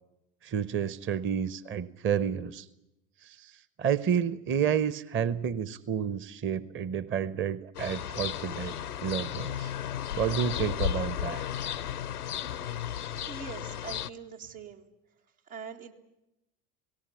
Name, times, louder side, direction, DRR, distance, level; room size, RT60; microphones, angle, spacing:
voice 1, 0.4-2.7 3.3-3.5 3.8-8.7 9.0-9.7 10.2-11.4, right 8 dB, 30° right, 17 dB, 0.8 m, -30 dB
sound 1, 7.7-14.1, left 10 dB, 85° left, 0.8 m, -34 dB
voice 2, 13.3-14.9 15.5-15.9, right 6 dB, 75° right, 1 dB, 2.3 m, -43 dB
18.5 x 18.0 x 9.8 m, 0.90 s
figure-of-eight pair, 70°, 44 cm